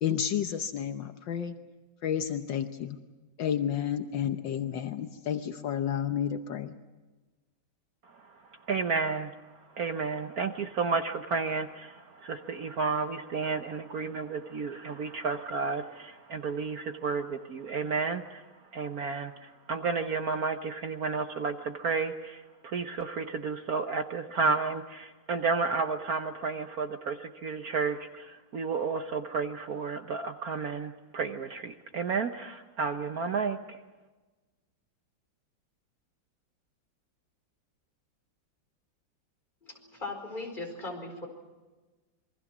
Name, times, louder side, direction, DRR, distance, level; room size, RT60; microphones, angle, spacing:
voice 1, 0.0-1.5 2.0-3.0 3.4-6.7, left 9 dB, 70° left, 7 dB, 1.6 m, -31 dB
voice 2, 8.7-9.3 9.7-18.4 18.7-33.8, right 4 dB, 55° right, 7 dB, 1.3 m, -32 dB
voice 3, 39.6-41.3, left 2 dB, 25° left, 2 dB, 4.9 m, -38 dB
27.5 x 23.0 x 6.1 m, 1.2 s
omnidirectional pair, 2.1 m